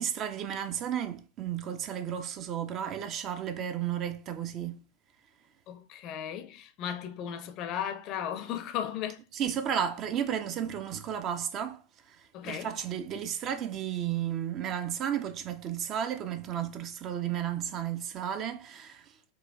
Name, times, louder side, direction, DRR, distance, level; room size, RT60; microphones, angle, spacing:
voice 1, 0.0-4.8 9.3-11.8 12.1-12.2 12.4-19.1, right 9 dB, 35° right, 0.4 m, -33 dB
voice 2, 5.7-9.2 12.3-12.7, left 9 dB, 40° left, 0.5 m, -36 dB
4.6 x 2.2 x 2.4 m
figure-of-eight pair, 90°, 0 cm